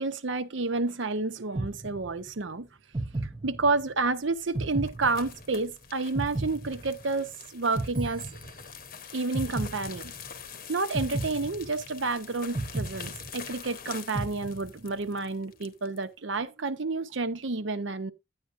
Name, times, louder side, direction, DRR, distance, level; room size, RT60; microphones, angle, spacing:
voice 1, 0.0-2.7 3.4-8.2 9.1-10.1 10.7-18.1, right 3 dB, 70° right, 0.8 m, -30 dB
sound 1, 1.5-2.4 2.9-4.0 4.5-5.7 6.1-7.3 7.7-8.9 9.3-10.4 10.9-12.1 12.5-13.7 14.1-15.0, right 2 dB, 25° right, 0.6 m, -34 dB
sound 2, 4.3-16.0, left 7 dB, 50° left, 0.9 m, -45 dB
10.5 x 9.4 x 2.5 m
head